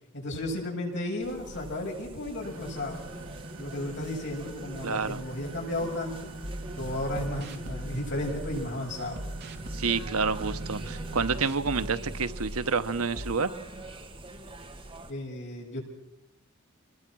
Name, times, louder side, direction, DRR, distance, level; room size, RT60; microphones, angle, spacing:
voice 1, 0.1-3.0 3.6-6.3 6.7-9.2 15.1-15.8, left 1 dB, 55° left, -1 dB, 7.7 m, -34 dB
sound 1, 1.2-15.1, right 2 dB, 25° right, 2.2 m, -45 dB
sound 2, 2.4-11.2, right 2 dB, 65° right, 2.1 m, -44 dB
voice 2, 4.8-5.2 9.7-13.5, right 5 dB, 90° right, 11 dB, 1.0 m, -28 dB
sound 3, 6.4-8.7 9.1-12.7 13.1-13.3, right 1 dB, 50° right, 2.4 m, -39 dB
27.0 x 21.5 x 6.2 m, 0.79 s
head